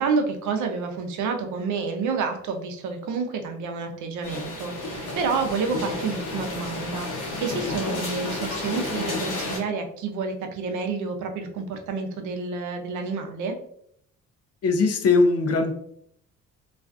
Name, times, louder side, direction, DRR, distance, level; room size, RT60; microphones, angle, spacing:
voice 1, 0.0-13.5, right 4 dB, 75° right, 5 dB, 0.5 m, -29 dB
sound 1, 4.2-9.6, left 2 dB, 85° left, 0.8 m, -31 dB
voice 2, 14.6-15.7, left 3 dB, 55° left, 6 dB, 0.5 m, -20 dB
2.4 x 2.3 x 2.4 m, 0.67 s
cardioid pair, 90°, 30 cm